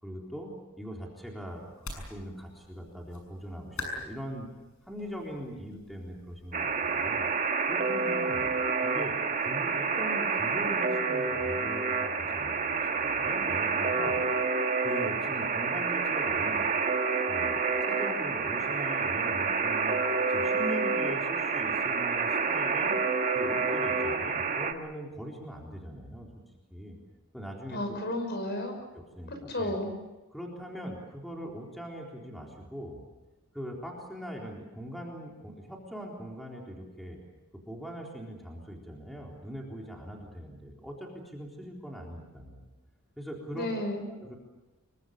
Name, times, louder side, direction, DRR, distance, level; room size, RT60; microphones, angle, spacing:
voice 1, 0.0-4.5 4.9-7.3 7.6-8.5 8.8-9.1 9.4-14.2 14.8-17.0 17.3-20.0 20.3-23.0 23.3-26.4 26.7-27.0 27.3-28.0 28.9-29.7 30.3-33.0 33.5-37.2 37.5-42.6 43.2-43.7 44.1-44.4, equal, ahead, -1 dB, 3.8 m, -41 dB
sound 1, 1.5-7.1, left 2 dB, 75° left, 6.7 m, -45 dB
Alarm, 6.5-24.7, right 4 dB, 40° right, 1.5 m, -28 dB
voice 2, 27.7-28.8 29.3-29.9 43.5-44.1, left 1 dB, 50° left, 6 dB, 5.8 m, -32 dB
26.0 x 23.5 x 7.1 m, 1.1 s
head